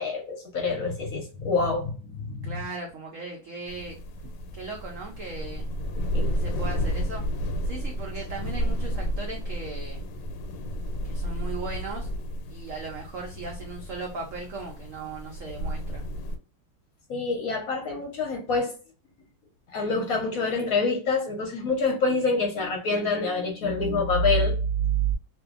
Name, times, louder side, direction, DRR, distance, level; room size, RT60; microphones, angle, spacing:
voice 1, 0.0-2.6 6.1-6.4 17.1-18.7 19.7-25.1, left 2 dB, 60° left, 1.0 m, -26 dB
voice 2, 2.4-4.0 4.2-5.7 6.3-7.2 7.6-10.0 11.0-12.1 12.5-16.0, right 3 dB, 80° right, 0.7 m, -38 dB
sound 1, 3.7-16.4, equal, 90° left, 1.3 m, -32 dB
2.7 x 2.6 x 2.3 m
omnidirectional pair, 2.0 m